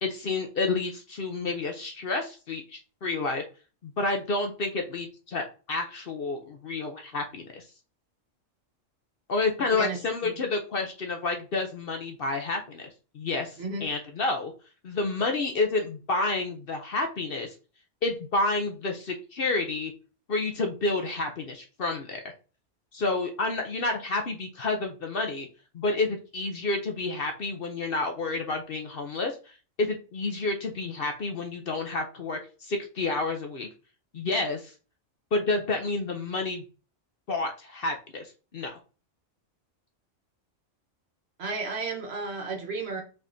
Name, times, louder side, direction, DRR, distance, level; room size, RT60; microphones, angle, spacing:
voice 1, 0.0-3.4 3.8-7.6 9.3-12.9 13.1-14.5 14.8-17.5 18.0-19.9 20.3-22.2 22.9-25.5 25.7-33.7 34.1-34.7 35.3-36.6 37.3-38.3 38.5-38.8, left 3 dB, 55° left, 0.8 m, -29 dB
voice 2, 9.7-10.4 13.6-13.9 41.4-43.0, right 3 dB, 55° right, 1.2 m, -33 dB
5.2 x 3.5 x 2.6 m
omnidirectional pair, 1.3 m